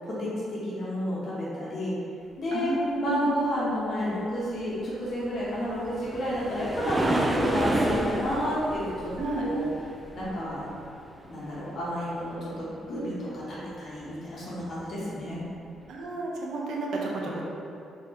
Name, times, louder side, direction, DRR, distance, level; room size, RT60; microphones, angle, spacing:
voice 1, 0.0-1.9 2.4-9.1 9.4-9.6 10.1-10.7 11.2-15.4, equal, 55° left, -8 dB, 1.0 m, -31 dB
voice 2, 2.5-3.3 9.2-9.5 15.9-17.4, right 2 dB, 75° right, -2 dB, 0.6 m, -31 dB
sound 1, 5.5-10.7 14.6-14.7 15.3-15.4, right 1 dB, 20° right, 0.3 m, -29 dB
3.5 x 3.5 x 2.9 m, 2.6 s
cardioid pair, 90°, 0 cm